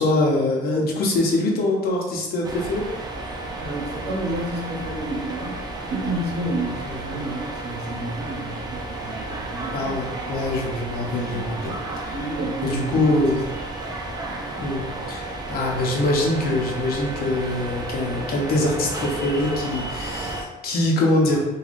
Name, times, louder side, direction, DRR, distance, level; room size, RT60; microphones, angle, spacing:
voice 1, 0.0-2.9 7.1-7.2 9.7-12.1 12.6-13.4 14.6-21.5, left 2 dB, 65° left, -1 dB, 0.7 m, -23 dB
sound 1, 2.4-20.4, right 2 dB, 25° right, 0.4 m, -32 dB
voice 2, 3.6-5.6 5.9-9.9 12.1-13.2, right 1 dB, 80° right, -2 dB, 0.7 m, -30 dB
3.3 x 2.3 x 2.5 m, 1.0 s
cardioid pair, 110°, 17 cm